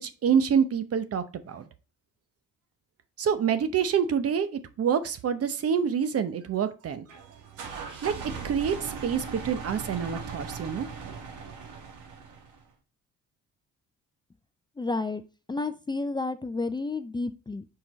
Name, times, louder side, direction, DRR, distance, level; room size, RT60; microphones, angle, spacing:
voice 1, 0.0-1.6 3.2-7.1 8.0-8.1 8.4-10.9, right 7 dB, 50° right, 11 dB, 0.8 m, -27 dB
sound 1, 7.1-12.7, right 5 dB, 85° right, 1.5 m, -39 dB
voice 2, 14.8-15.2 15.5-17.7, left 3 dB, 15° left, 10 dB, 0.4 m, -31 dB
5.3 x 4.6 x 4.1 m, 0.33 s
cardioid pair, 90°, 30 cm